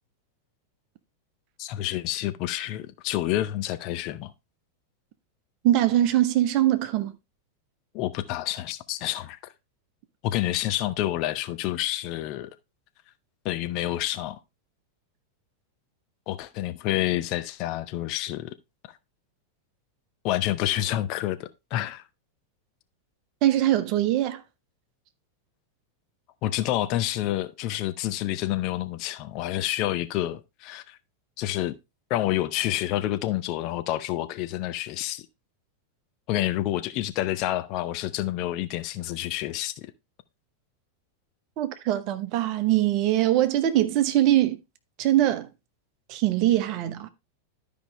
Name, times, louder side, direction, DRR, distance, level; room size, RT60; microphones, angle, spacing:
voice 1, 1.6-4.3 7.9-9.5 10.2-12.5 13.4-14.4 16.3-18.5 20.2-22.0 26.4-31.0 31.4-31.8 32.1-35.3 36.3-39.9, left 14 dB, 40° left, 0.6 m, -28 dB
voice 2, 5.6-7.1 23.4-24.4 41.6-44.6 45.0-45.5 46.1-47.1, right 13 dB, 40° right, 1.0 m, -22 dB
12.5 x 5.1 x 3.2 m
figure-of-eight pair, 90°, 0 cm